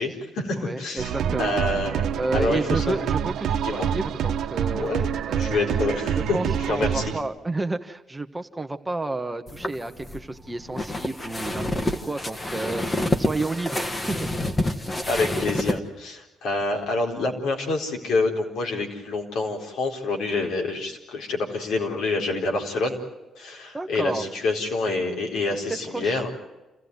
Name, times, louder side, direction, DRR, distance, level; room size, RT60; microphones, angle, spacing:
voice 1, 0.0-1.1 1.4-2.0 2.3-3.0 3.6-3.9 4.8-5.1 5.4-6.4 6.7-7.0 15.1-23.0 23.4-26.3, left 3 dB, 80° left, 1 dB, 4.2 m, -27 dB
voice 2, 0.6-1.6 2.1-5.9 6.3-14.3 23.7-24.2 25.7-26.2, right 2 dB, 15° right, 7 dB, 1.2 m, -31 dB
sound 1, 1.0-7.2, right 8 dB, 75° right, 1.1 m, -27 dB
sound 2, 9.5-15.8, left 1 dB, 25° left, 1.8 m, -28 dB
28.5 x 15.0 x 9.5 m, 1.0 s
cardioid pair, 90°, 0 cm